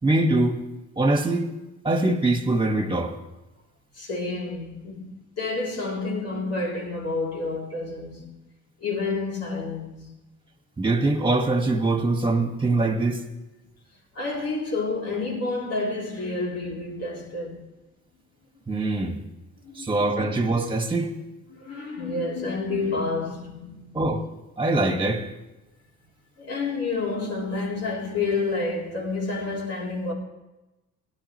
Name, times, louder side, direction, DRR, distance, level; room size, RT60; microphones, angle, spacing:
voice 1, 0.0-0.6 1.0-1.5 1.8-3.1 10.8-13.2 18.7-19.2 19.8-21.1 23.9-24.3 24.6-25.2, right 2 dB, 15° right, 2.1 m, -23 dB
voice 2, 3.9-8.3 8.8-10.1 14.1-17.6 19.6-20.0 21.5-23.9 26.4-30.1, left 3 dB, 55° left, 3.9 m, -29 dB
18.5 x 11.5 x 3.4 m
cardioid pair, 90°, 30 cm